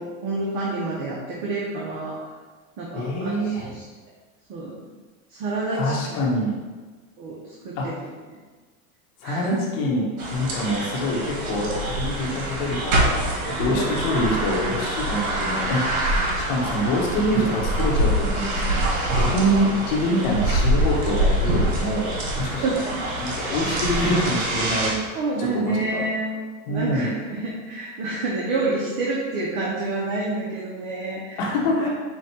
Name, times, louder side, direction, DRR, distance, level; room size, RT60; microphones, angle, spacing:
voice 1, 0.0-2.1 2.8-3.8 4.5-4.8 5.3-5.9 7.2-7.4 7.6-7.9 9.2-9.6 10.7-10.8 13.6-13.9 16.1-16.3 22.4-23.0 23.4-23.5 25.1-26.3 26.7-31.5 31.8-31.9, right 2 dB, 50° right, -4 dB, 0.9 m, -28 dB
voice 2, 2.9-3.7 5.7-6.5 7.8-8.0 9.2-16.1 16.4-18.8 19.1-22.8 23.5-25.0 25.4-26.0 26.7-27.1 31.4-31.9, equal, 65° left, -2 dB, 1.1 m, -25 dB
sound 1, 10.2-24.9, right 1 dB, 80° right, 1.2 m, -25 dB
5.8 x 2.4 x 2.9 m, 1.4 s
supercardioid pair, 115°, 42 cm